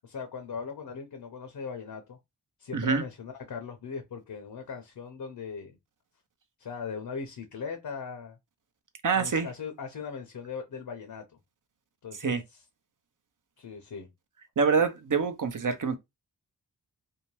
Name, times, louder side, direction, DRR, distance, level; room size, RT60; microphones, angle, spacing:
voice 1, 0.0-2.2 2.6-5.8 6.6-8.4 9.1-11.4 12.0-12.6 13.6-14.1, left 5 dB, 60° left, 0.7 m, -39 dB
voice 2, 2.7-3.0 9.0-9.5 12.2-12.4 14.6-16.0, right 5 dB, 50° right, 0.7 m, -26 dB
2.7 x 2.1 x 3.1 m
cardioid pair, 55°, 40 cm